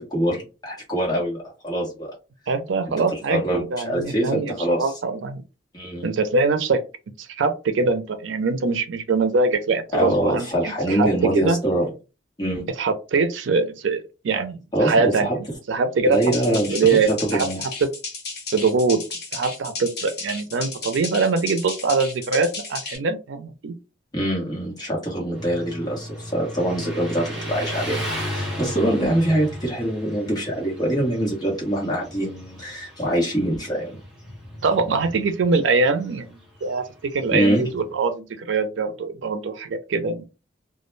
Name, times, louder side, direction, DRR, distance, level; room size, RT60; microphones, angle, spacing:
voice 1, 0.0-2.1 3.1-4.9 5.7-6.1 9.9-11.9 12.4-12.6 14.7-15.4 16.0-17.6 24.1-28.0 28.3-33.9 37.3-37.6, right 1 dB, 20° left, -3 dB, 1.0 m, -24 dB
voice 2, 2.5-4.5 4.8-5.4 6.0-6.8 7.2-11.6 12.8-15.3 15.7-16.2 16.5-17.5 17.8-17.9 18.5-19.0 19.3-23.7 34.6-40.2, right 4 dB, 90° right, 8 dB, 0.5 m, -23 dB
sound 1, 16.1-23.0, left 4 dB, 60° left, 1.2 m, -34 dB
Motorcycle, 25.3-38.0, equal, 5° right, 0.9 m, -35 dB
2.2 x 2.1 x 3.1 m, 0.30 s
head